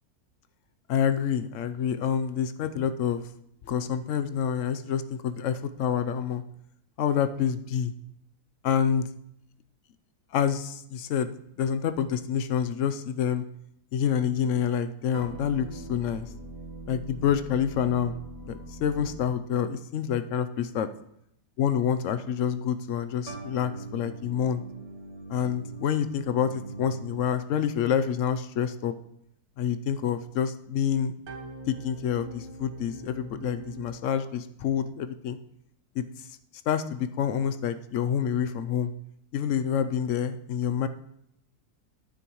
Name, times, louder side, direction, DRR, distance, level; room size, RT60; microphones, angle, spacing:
voice 1, 0.9-3.2 3.6-6.4 7.0-7.9 8.6-9.1 10.3-11.3 11.6-13.4 13.9-16.3 16.9-20.9 21.6-24.6 25.3-28.9 29.6-31.1 31.7-35.4 36.0-36.3 36.7-38.9 39.3-40.9, left 8 dB, 65° left, 11 dB, 0.8 m, -27 dB
sound 1, 15.1-19.8 23.3-27.6 31.3-33.9, right 2 dB, 70° right, 1.6 m, -42 dB
10.5 x 9.1 x 3.0 m, 0.74 s
omnidirectional pair, 1.7 m